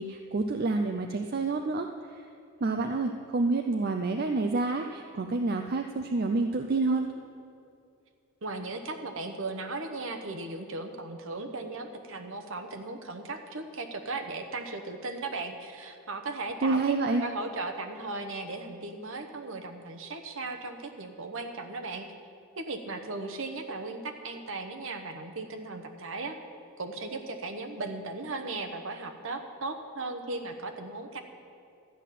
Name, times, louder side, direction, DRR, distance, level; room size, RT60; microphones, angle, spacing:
voice 1, 0.0-2.2 2.6-7.1 16.6-17.2, right 3 dB, 45° right, 5 dB, 0.4 m, -28 dB
voice 2, 8.4-16.9 17.2-22.1 22.6-26.4 26.8-31.2, right 3 dB, 60° right, 6 dB, 1.0 m, -37 dB
13.0 x 5.8 x 9.2 m, 2.5 s
head